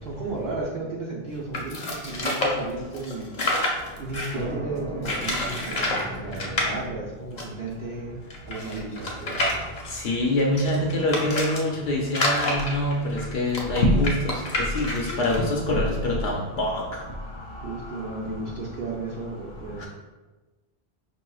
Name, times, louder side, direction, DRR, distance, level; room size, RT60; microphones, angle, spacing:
voice 1, 0.0-3.3 3.9-9.7 17.6-19.9, right 3 dB, 65° right, -5 dB, 0.8 m, -34 dB
sound 1, 1.5-4.4 5.0-6.1 6.3-6.7 7.4-7.5 7.7-7.8 8.3-11.6 12.1-15.4, left 1 dB, 45° left, 0.8 m, -28 dB
sound 2, 4.3-11.7, right 1 dB, 25° right, 0.8 m, -40 dB
voice 2, 9.9-16.8 17.3-18.2 19.8-19.9, left 1 dB, 75° left, -1 dB, 0.8 m, -25 dB
5.3 x 2.9 x 2.3 m, 1.2 s
omnidirectional pair, 1.1 m